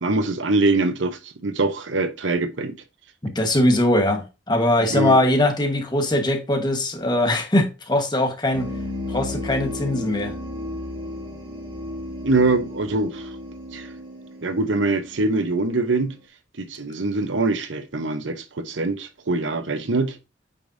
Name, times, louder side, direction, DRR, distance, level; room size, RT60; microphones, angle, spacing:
voice 1, 0.0-2.8 4.9-5.2 12.2-13.3 13.7-13.9 14.4-16.2 16.6-20.2, right 2 dB, 90° right, 0.9 m, -23 dB
voice 2, 3.2-8.7 9.1-10.3, left 1 dB, 25° left, 1.3 m, -21 dB
sound 1, 8.5-15.9, left 1 dB, 25° right, 1.8 m, -34 dB
8.5 x 5.1 x 2.7 m
head